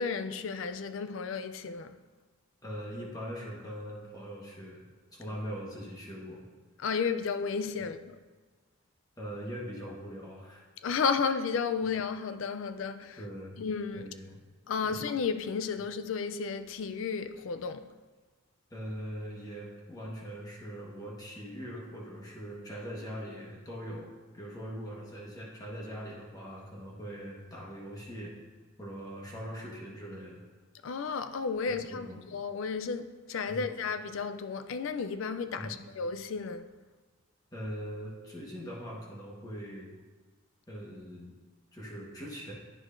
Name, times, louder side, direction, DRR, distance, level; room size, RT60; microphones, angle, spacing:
voice 1, 0.0-2.0 6.8-8.2 10.8-13.2 13.6-14.1 14.7-17.9 30.8-36.7, left 5 dB, 70° left, 0.4 m, -33 dB
voice 2, 2.6-4.8 5.1-6.4 7.8-7.9 9.2-10.6 13.2-13.6 13.9-14.4 14.8-15.0 18.7-28.3 28.8-30.4 31.7-32.2 33.5-33.7 35.5-35.8 37.5-39.9 40.7-41.3 41.7-42.5, equal, 20° left, 1.2 m, -41 dB
9.8 x 6.1 x 2.5 m
head